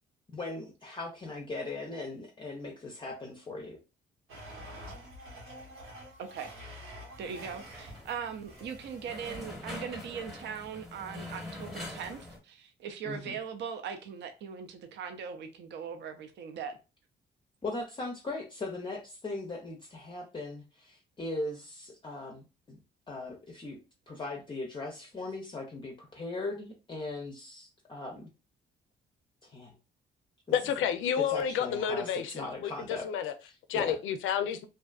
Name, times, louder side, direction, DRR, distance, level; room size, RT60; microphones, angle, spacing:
voice 1, 0.3-3.8 13.0-13.4 17.6-22.8 23.1-23.8 24.1-28.3 29.4-29.8 31.2-33.1 33.4-34.0, left 2 dB, 25° left, 0.5 m, -39 dB
Domestic sounds home sounds, 4.3-8.1 8.4-9.4, equal, 85° right, 1.0 m, -47 dB
voice 2, 6.2-6.5 7.2-16.8, right 7 dB, 60° right, 0.5 m, -40 dB
sound 1, 7.2-12.4, left 1 dB, ahead, 0.9 m, -44 dB
voice 3, 30.5-33.3 33.7-34.7, left 8 dB, 80° left, 0.4 m, -30 dB
2.5 x 2.3 x 2.2 m
cardioid pair, 90°, 20 cm